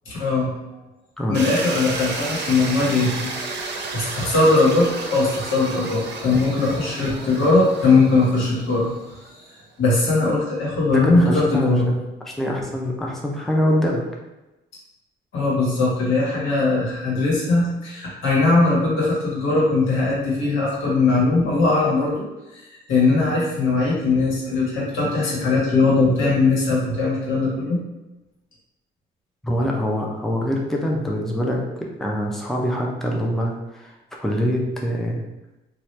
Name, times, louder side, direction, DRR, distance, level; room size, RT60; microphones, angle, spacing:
voice 1, 0.0-0.5 1.3-3.3 3.9-8.9 9.5-11.9 15.3-22.2 22.5-27.8, left 3 dB, 85° left, -5 dB, 1.3 m, -20 dB
sound 1, 1.3-9.3, right 3 dB, 60° right, 0.6 m, -32 dB
voice 2, 10.9-12.0 12.3-14.0 29.4-33.9 34.2-35.3, equal, ahead, -2 dB, 0.5 m, -24 dB
2.9 x 2.4 x 3.2 m, 1.0 s
cardioid pair, 90°, 20 cm